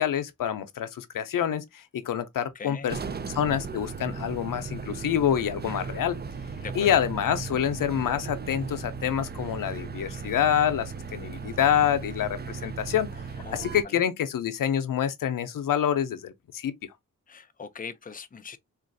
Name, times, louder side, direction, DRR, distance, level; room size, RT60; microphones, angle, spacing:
voice 1, 0.0-3.0 3.3-6.2 6.8-13.1 13.5-16.7, left 9 dB, 90° left, 0.5 m, -27 dB
voice 2, 2.5-3.0 6.5-6.9 13.4-14.0 17.3-18.6, left 5 dB, 25° left, 0.5 m, -41 dB
sound 1, 2.9-13.8, right 5 dB, 30° right, 0.5 m, -37 dB
3.8 x 2.5 x 2.5 m
cardioid pair, 65°, 32 cm